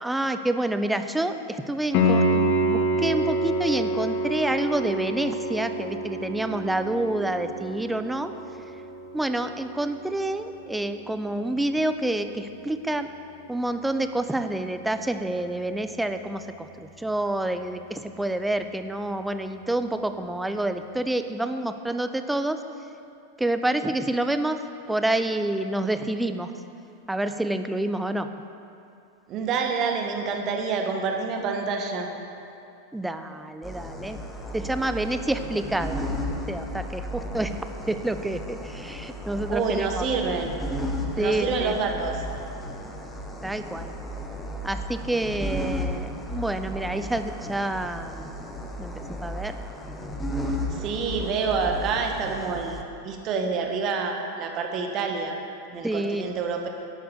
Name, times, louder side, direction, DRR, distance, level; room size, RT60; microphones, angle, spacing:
voice 1, 0.0-8.3 9.1-13.1 13.5-22.6 23.4-24.6 24.9-26.5 27.1-28.3 32.9-34.2 34.5-36.0 36.5-37.6 37.9-40.0 41.2-41.8 43.4-43.9 44.6-48.3 48.8-48.9 49.2-49.6 49.9-50.0 55.8-56.3, right 1 dB, 5° right, 9 dB, 0.7 m, -28 dB
Piano, 1.9-12.6 15.9-16.0, right 1 dB, 45° left, 1.5 m, -28 dB
voice 2, 29.3-32.1 39.5-40.5 41.2-42.2 50.7-52.8 53.0-55.4 55.7-56.7, right 5 dB, 35° right, 3 dB, 1.8 m, -27 dB
sound 1, 33.6-52.8, equal, 10° left, 1.4 m, -34 dB
12.0 x 11.0 x 6.9 m, 2.7 s
figure-of-eight pair, 90°, 0 cm